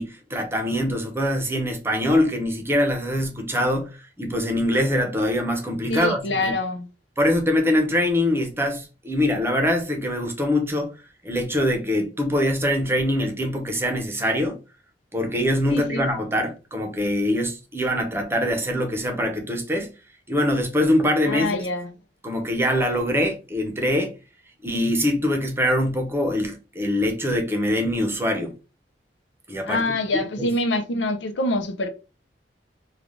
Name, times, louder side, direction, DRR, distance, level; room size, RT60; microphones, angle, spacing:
voice 1, 0.0-3.9 4.2-6.5 7.2-11.0 11.2-14.6 15.1-19.9 20.3-21.6 22.2-24.1 24.6-28.5 29.5-29.8 30.4-30.5, left 1 dB, 15° right, 0.8 m, -23 dB
voice 2, 5.9-6.9 15.7-16.1 21.2-21.9 29.7-31.9, left 2 dB, 85° left, 0.6 m, -25 dB
3.3 x 2.3 x 3.7 m
head